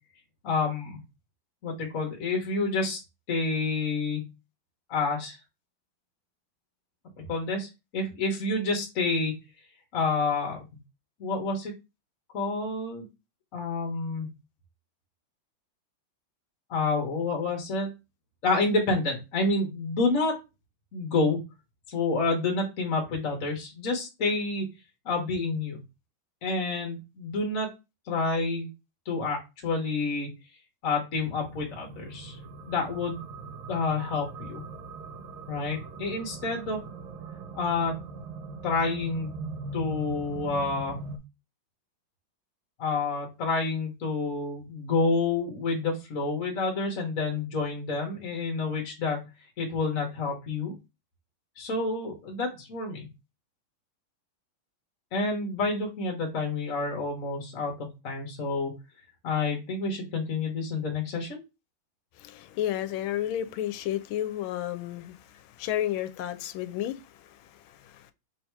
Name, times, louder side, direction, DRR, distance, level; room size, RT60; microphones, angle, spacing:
voice 1, 0.4-1.0 1.6-3.0 3.3-4.3 4.9-5.4 7.2-9.3 9.9-10.6 11.2-11.7 12.3-13.1 13.5-14.3 16.7-17.9 18.4-20.3 20.9-21.4 21.9-24.6 25.0-25.8 26.4-27.7 28.1-28.7 29.1-30.3 30.8-32.4 32.7-33.2 33.7-34.6 35.5-36.8 37.5-37.9 38.6-39.3 39.7-41.0 42.8-49.3 49.6-50.7 51.6-53.1 55.1-58.7 59.2-61.4, left 3 dB, 50° left, 1.2 m, -28 dB
sound 1, 31.2-41.2, right 3 dB, 85° right, 1.5 m, -40 dB
voice 2, 62.2-68.1, left 12 dB, 85° left, 1.4 m, -32 dB
3.6 x 2.8 x 4.5 m
omnidirectional pair, 2.2 m